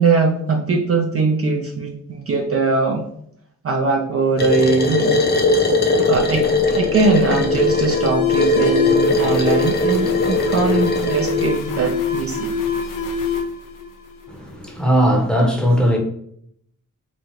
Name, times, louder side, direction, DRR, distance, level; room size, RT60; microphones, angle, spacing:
voice 1, 0.0-3.0 3.6-5.2 6.1-12.5, right 4 dB, 45° right, 0.5 m, -21 dB
sound 1, 4.4-11.5, left 2 dB, 30° left, 0.6 m, -19 dB
Alarm, 6.0-14.6, left 4 dB, 75° left, 0.5 m, -24 dB
voice 2, 14.3-16.0, equal, 5° left, 0.8 m, -18 dB
4.1 x 2.3 x 3.1 m
cardioid pair, 75°, 33 cm